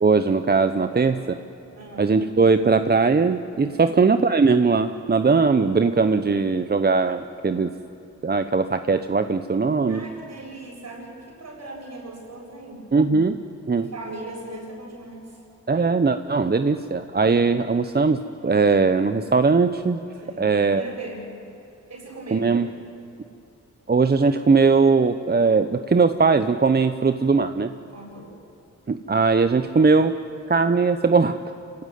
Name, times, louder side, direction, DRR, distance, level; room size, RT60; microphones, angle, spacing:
voice 1, 0.0-1.2 2.0-7.7 8.2-10.0 12.9-13.4 13.6-13.9 15.7-20.0 20.4-20.8 22.3-22.7 23.9-27.7 28.9-30.2 30.5-31.4, right 4 dB, 35° right, 9 dB, 0.9 m, -20 dB
voice 2, 1.7-2.1 3.7-4.0 9.9-12.9 13.7-15.4 20.2-21.3 21.9-22.5 27.8-28.3, right 2 dB, 65° right, 0 dB, 7.7 m, -39 dB
28.5 x 16.5 x 9.4 m, 2.7 s
cardioid pair, 70°, 29 cm